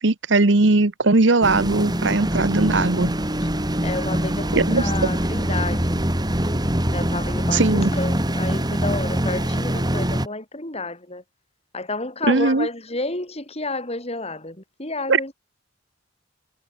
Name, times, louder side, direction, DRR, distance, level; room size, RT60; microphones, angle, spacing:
voice 1, 0.0-3.2 4.5-5.1 7.5-7.9 12.3-12.7 15.1-15.2, right 3 dB, 65° right, 1.2 m, -19 dB
sound 1, 1.4-10.3, equal, 20° right, 3.7 m, -23 dB
voice 2, 3.8-6.0 6.9-11.2 11.7-15.3, left 2 dB, 30° left, 5.2 m, -30 dB
head